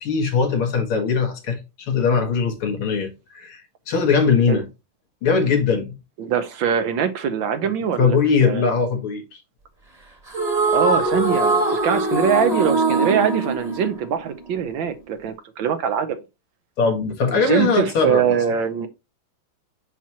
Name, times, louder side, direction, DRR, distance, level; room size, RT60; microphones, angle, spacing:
voice 1, 0.0-4.7 5.2-5.9 8.0-9.4 16.8-18.2, left 5 dB, 85° left, 2.3 m, -20 dB
voice 2, 6.2-8.6 10.7-16.2 17.3-18.9, right 7 dB, 70° right, 1.4 m, -23 dB
sound 1, 10.3-14.7, right 2 dB, 20° right, 1.3 m, -22 dB
6.0 x 5.8 x 2.8 m
omnidirectional pair, 2.3 m